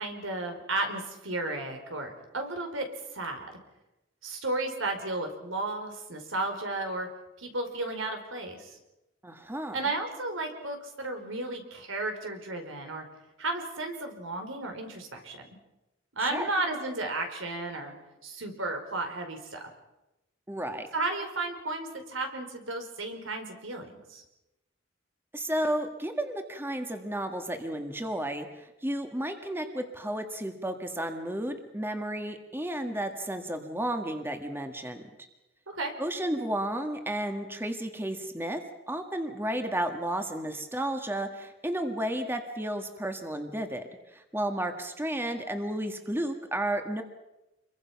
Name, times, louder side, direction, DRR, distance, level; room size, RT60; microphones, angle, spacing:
voice 1, 0.0-2.9 3.1-3.5 4.2-7.1 7.4-8.8 9.7-13.0 13.4-15.4 16.1-17.9 18.2-19.7 20.9-24.2 35.7-35.9, right 2 dB, 80° right, 5 dB, 4.6 m, -33 dB
voice 2, 9.2-9.8 16.2-16.5 20.5-20.9 25.3-35.0 36.0-43.8 44.1-47.0, right 1 dB, 10° right, 6 dB, 1.7 m, -32 dB
28.5 x 23.0 x 5.9 m, 0.96 s
head